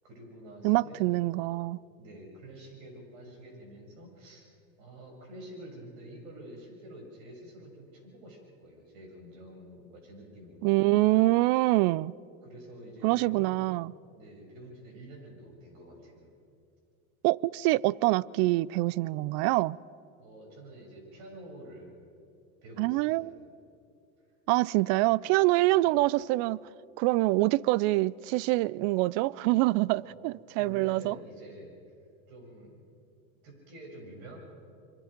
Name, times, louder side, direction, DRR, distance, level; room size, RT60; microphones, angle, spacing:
voice 1, 0.0-1.1 2.0-4.5 4.8-10.8 12.4-13.6 14.2-16.3 20.2-22.0 22.6-23.4 25.7-25.9 29.8-30.2 30.5-31.9 32.3-32.9 33.4-34.4, right 1 dB, 70° right, 7.7 m, -48 dB
voice 2, 0.6-1.8 10.6-12.1 13.0-13.9 17.2-19.8 22.8-23.4 24.5-26.6 27.0-31.1, right 20 dB, 50° right, 0.5 m, -25 dB
26.0 x 23.5 x 5.3 m
supercardioid pair, 110°, 42 cm